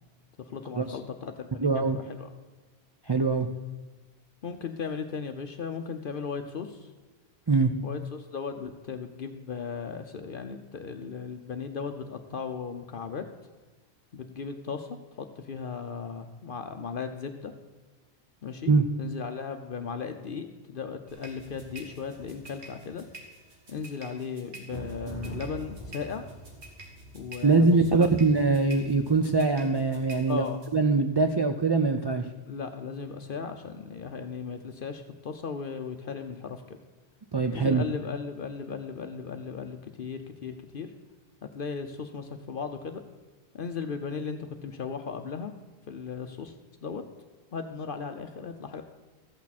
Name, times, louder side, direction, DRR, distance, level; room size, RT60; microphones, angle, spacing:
voice 1, 0.5-2.3 4.4-6.9 7.8-13.2 14.1-17.5 18.4-18.7 19.0-23.0 23.7-26.3 27.1-28.1 30.3-30.6 32.5-36.8 37.5-40.9 41.5-43.0 43.5-45.5 45.9-46.5 46.8-47.0 47.5-48.8, left 5 dB, 55° left, 7 dB, 0.8 m, -36 dB
voice 2, 1.6-2.0 3.1-3.5 7.5-7.7 18.7-18.9 27.4-30.4 30.7-32.3 37.3-37.8, right 3 dB, 45° right, 6 dB, 0.3 m, -23 dB
sound 1, 21.1-30.7, right 2 dB, 75° right, 2.2 m, -45 dB
13.5 x 8.4 x 4.2 m, 1.3 s
omnidirectional pair, 1.1 m